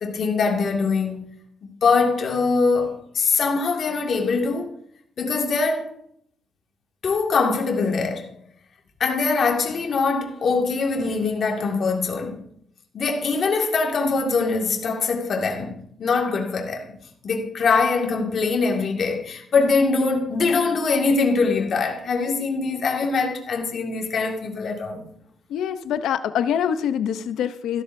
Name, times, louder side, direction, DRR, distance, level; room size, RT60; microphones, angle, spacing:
voice 1, 0.0-1.3 1.8-4.7 5.2-5.9 7.0-8.4 9.0-12.4 12.9-17.0 17.2-25.1, left 4 dB, 55° left, 2.1 m, -23 dB
voice 2, 25.5-27.8, left 9 dB, 80° left, 0.7 m, -25 dB
14.5 x 12.5 x 2.7 m
cardioid pair, 90°, 0 cm